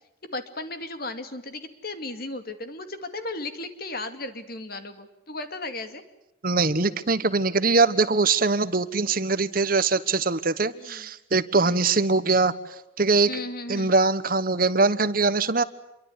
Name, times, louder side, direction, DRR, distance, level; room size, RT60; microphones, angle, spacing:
voice 1, 0.2-6.0 10.7-11.1 11.6-11.8 13.3-13.9, left 2 dB, 50° left, 8 dB, 2.5 m, -35 dB
voice 2, 6.4-12.5 13.0-13.3 13.7-15.6, right 3 dB, 45° right, 14 dB, 1.1 m, -22 dB
27.5 x 23.5 x 8.2 m, 0.88 s
head